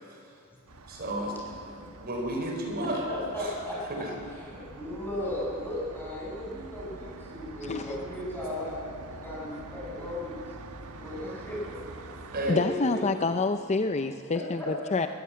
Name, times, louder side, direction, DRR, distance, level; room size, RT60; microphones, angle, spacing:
sound 1, 0.7-12.5, right 2 dB, 75° right, 1.4 m, -46 dB
voice 1, 0.9-1.6 2.0-3.0 3.4-3.5 3.9-4.1 12.3-12.6, right 1 dB, 45° right, 1 dB, 4.3 m, -32 dB
voice 2, 2.8-4.0 4.3-8.8 9.1-10.4 11.0-12.1 12.6-13.0 14.6-14.7, left 1 dB, 10° left, -5 dB, 7.6 m, -36 dB
voice 3, 7.6-8.0 12.5-15.1, left 3 dB, 30° left, 9 dB, 0.5 m, -27 dB
22.0 x 15.0 x 8.7 m, 2.5 s
head